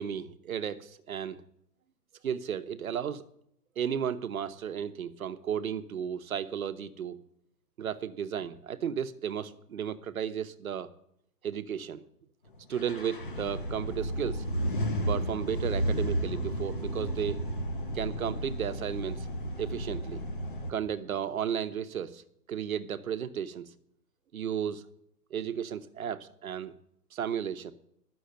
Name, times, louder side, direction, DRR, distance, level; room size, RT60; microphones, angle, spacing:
voice 1, 0.0-1.4 2.2-3.2 3.8-7.2 7.8-10.9 11.4-12.0 12.7-14.4 15.1-17.5 17.9-19.3 19.6-20.2 20.7-22.2 22.5-23.7 24.3-24.8 25.3-26.7 27.1-27.7, right 8 dB, 55° right, 10 dB, 0.9 m, -34 dB
sound 1, 12.7-20.7, right 1 dB, 30° left, 0.8 m, -33 dB
11.5 x 6.3 x 7.7 m, 0.74 s
hypercardioid pair, 175°, 50 cm